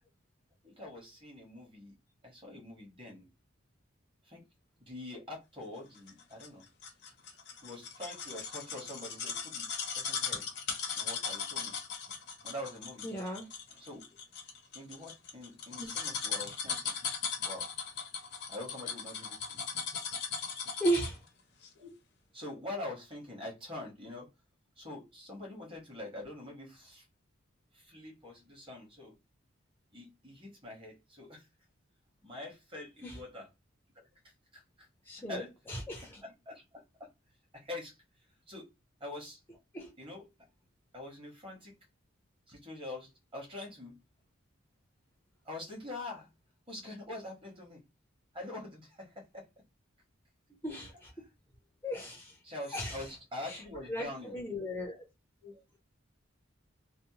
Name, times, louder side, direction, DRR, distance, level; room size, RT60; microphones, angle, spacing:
voice 1, 0.6-1.9 2.2-3.3 4.3-4.4 4.8-6.6 7.6-9.7 9.9-10.5 10.9-11.7 12.4-13.0 13.7-14.0 14.7-17.0 17.4-17.6 18.5-19.7 21.7-21.9 22.3-24.3 24.8-27.0 27.7-29.1 29.9-31.5 32.2-33.5 33.9-34.0 34.5-34.9 35.3-35.5 36.2-37.1 37.5-38.0 38.5-38.7 39.0-39.4 40.0-40.2 40.9-41.7 42.5-44.0 45.4-46.3 46.7-47.8 48.3-49.5 52.4-54.3 55.4-55.6, left 2 dB, 25° right, 1.2 m, -44 dB
sound 1, 6.1-21.3 21.6-21.7, left 6 dB, 55° left, 0.6 m, -38 dB
voice 2, 13.0-13.5 15.8-15.9 20.8-21.2 33.0-33.2 35.1-36.2 39.7-39.9 50.6-51.1 51.8-52.4 52.7-53.1 53.4-53.6 53.9-55.1, right 1 dB, 10° left, 0.5 m, -35 dB
2.6 x 2.1 x 2.8 m
head